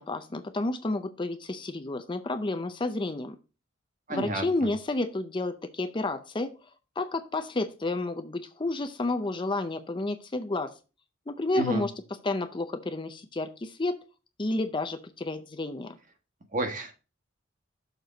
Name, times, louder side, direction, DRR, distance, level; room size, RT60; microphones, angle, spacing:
voice 1, 0.0-3.4 4.1-6.5 7.0-10.7 11.3-11.9 12.2-14.0 14.4-16.0, left 2 dB, 25° left, 9 dB, 0.5 m, -30 dB
voice 2, 4.1-4.4 11.5-11.8 16.5-16.9, right 2 dB, 40° right, 5 dB, 1.4 m, -30 dB
6.7 x 4.5 x 5.1 m, 0.32 s
head